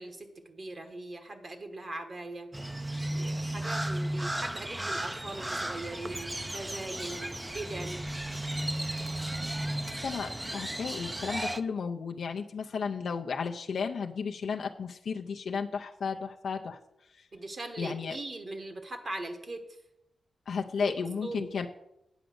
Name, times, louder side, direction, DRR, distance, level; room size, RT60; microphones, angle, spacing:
voice 1, 0.0-2.5 3.1-8.1 17.3-19.6 20.8-21.0 21.2-21.5, right 2 dB, 45° right, 6 dB, 1.4 m, -40 dB
Crow, 2.5-11.6, right 1 dB, 15° right, 0.5 m, -34 dB
voice 2, 10.0-16.8 17.8-18.2 20.5-21.7, left 5 dB, 80° left, 3 dB, 0.5 m, -33 dB
9.0 x 5.1 x 7.7 m, 0.84 s
cardioid pair, 85°, 0 cm